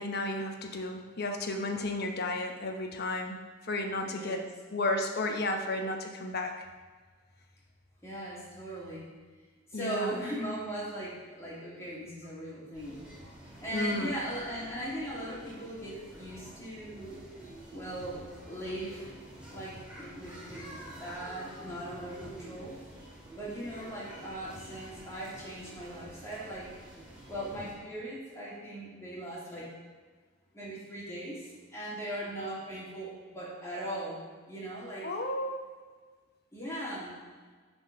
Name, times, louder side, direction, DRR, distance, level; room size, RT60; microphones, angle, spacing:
voice 1, 0.0-4.4 4.7-6.7 9.7-10.2 13.7-14.2 35.0-35.7, left 2 dB, 55° left, 4 dB, 1.0 m, -33 dB
voice 2, 4.0-4.5 8.0-9.1 9.7-13.0 13.6-17.2 17.7-19.1 19.5-20.7 21.0-22.8 23.4-26.7 27.3-29.7 30.5-35.1 36.5-37.1, right 1 dB, 15° left, -7 dB, 2.9 m, -39 dB
sound 1, 12.7-27.7, right 1 dB, 5° right, 2.2 m, -48 dB
10.0 x 4.5 x 5.4 m, 1.5 s
head